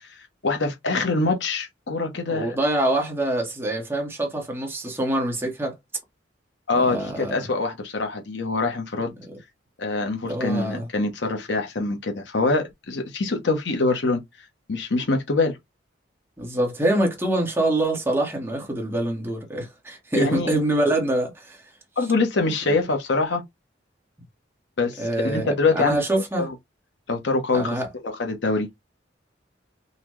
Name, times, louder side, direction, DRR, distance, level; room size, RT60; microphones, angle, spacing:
voice 1, 0.4-2.5 6.7-9.1 9.8-14.2 14.7-15.6 20.2-20.5 22.0-23.4 24.8-26.0 26.4-26.5 27.1-28.7, left 3 dB, 70° left, 0.8 m, -24 dB
voice 2, 2.3-5.7 6.8-7.5 10.3-10.9 16.4-21.6 25.0-26.5 27.5-27.9, right 1 dB, 15° right, 1.1 m, -25 dB
3.9 x 2.2 x 3.0 m
head